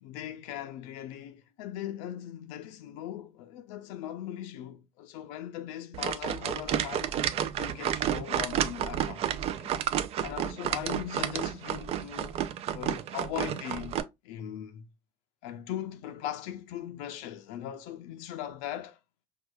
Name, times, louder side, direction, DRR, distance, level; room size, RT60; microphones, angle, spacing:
voice 1, 0.0-7.1 7.6-9.8 10.2-12.4 12.7-13.9 14.2-14.9 15.4-19.0, left 11 dB, 85° left, 0.5 m, -39 dB
sound 1, 5.9-14.0, right 10 dB, 55° right, 0.4 m, -31 dB
4.5 x 2.3 x 2.3 m
cardioid pair, 105°, 13 cm